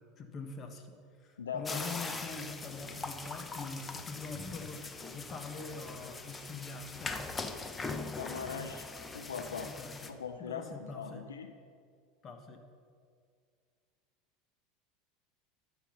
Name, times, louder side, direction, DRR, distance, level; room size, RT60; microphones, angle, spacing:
voice 1, 0.2-7.2 9.6-10.2 10.5-11.2 12.2-12.6, left 4 dB, 40° left, 5 dB, 1.4 m, -44 dB
voice 2, 1.4-1.9 8.2-8.8 9.1-9.7 10.1-11.5, left 6 dB, 90° left, 7 dB, 0.5 m, -40 dB
sound 1, 1.6-10.1, left 3 dB, 20° left, 0.8 m, -41 dB
11.5 x 7.2 x 5.6 m, 2.2 s
hypercardioid pair, 85°, 0 cm